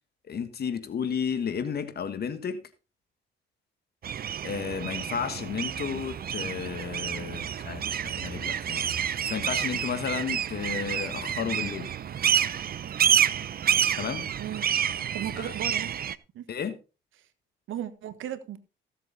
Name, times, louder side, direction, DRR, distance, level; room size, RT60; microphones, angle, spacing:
voice 1, 0.3-2.6 4.4-11.9 14.0-14.2 15.4-15.5 16.5-16.8, left 7 dB, 50° left, 1.5 m, -33 dB
sound 1, 4.0-16.2, right 9 dB, 50° right, 0.7 m, -29 dB
voice 2, 15.1-15.9 16.3-16.4 17.7-18.6, right 10 dB, 80° right, 1.4 m, -35 dB
15.5 x 7.6 x 4.1 m
cardioid pair, 90°, 20 cm